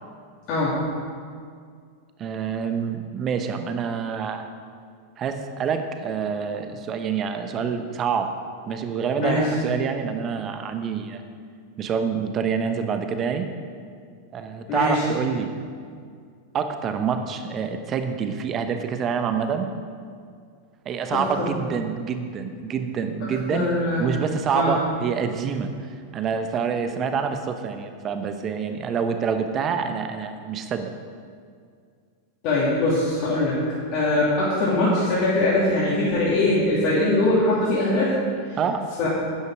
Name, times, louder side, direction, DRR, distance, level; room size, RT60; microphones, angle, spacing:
voice 1, 0.5-0.8 9.2-9.5 14.7-15.0 21.1-21.6 23.5-24.2 24.5-24.7 32.4-33.6 33.9-38.1 38.5-38.6 39.0-39.1, left 2 dB, 45° left, -8 dB, 2.8 m, -22 dB
voice 2, 2.2-4.5 5.2-8.3 8.7-11.2 11.8-13.5 14.3-15.5 16.5-19.7 20.8-23.6 24.0-30.9 38.6-38.8, right 6 dB, 30° right, 7 dB, 1.0 m, -27 dB
11.5 x 9.7 x 4.8 m, 2.1 s
figure-of-eight pair, 90°, 0 cm